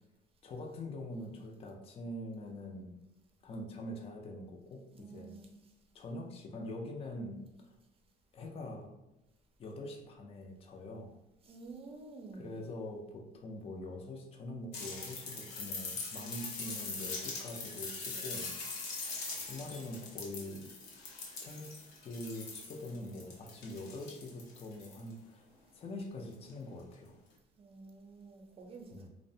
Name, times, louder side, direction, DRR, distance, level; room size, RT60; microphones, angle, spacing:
voice 1, 0.4-3.0 3.4-5.3 5.9-7.8 8.3-8.9 9.6-11.2 12.3-18.5 19.4-20.7 21.4-25.4 25.7-27.2 28.9-29.1, left 1 dB, 35° left, 2 dB, 0.4 m, -44 dB
voice 2, 4.9-5.5 11.4-12.5 27.6-29.1, right 3 dB, 35° right, 2 dB, 0.5 m, -50 dB
sound 1, 14.7-25.1 26.5-26.6, left 4 dB, 85° left, 0.7 m, -42 dB
2.5 x 2.1 x 2.6 m, 0.97 s
cardioid pair, 110°, 17 cm